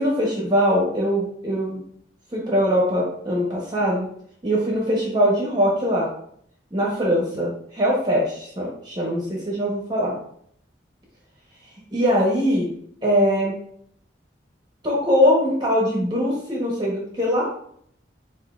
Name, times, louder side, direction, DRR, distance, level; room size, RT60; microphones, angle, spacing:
voice 1, 0.0-1.8 2.3-4.1 4.4-6.1 6.7-10.1 11.9-12.7 13.0-13.5 14.8-17.5, equal, 25° right, -3 dB, 0.9 m, -22 dB
7.6 x 2.7 x 2.4 m, 0.66 s
head